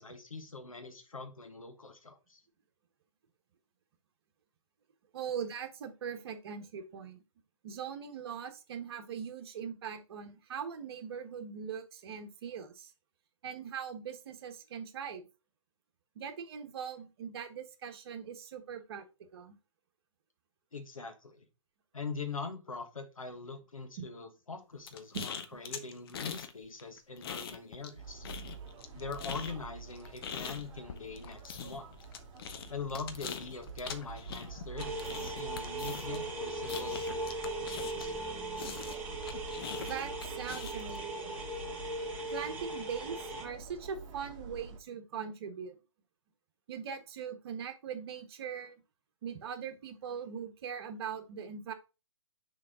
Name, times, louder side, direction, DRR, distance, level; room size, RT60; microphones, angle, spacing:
voice 1, 0.0-2.4 20.7-21.4 21.9-28.3 28.9-31.9 32.7-37.0 37.6-38.1, left 4 dB, 85° left, 6 dB, 1.5 m, -43 dB
voice 2, 5.1-7.2 7.6-12.9 13.4-15.3 16.1-19.0 19.3-19.5 24.0-24.1 25.1-25.2 39.8-41.4 42.3-45.8 46.7-48.7 49.2-51.7, right 7 dB, 50° right, 6 dB, 1.4 m, -41 dB
sound 1, 24.9-26.5 26.8-28.0 28.2-38.2 38.6-41.0, left 7 dB, 45° left, 0.9 m, -42 dB
sound 2, 28.0-44.8, right 5 dB, 25° right, 2.1 m, -48 dB
sound 3, 34.8-43.4, right 2 dB, 10° right, 1.6 m, -38 dB
6.6 x 4.1 x 3.8 m, 0.29 s
figure-of-eight pair, 130°, 17 cm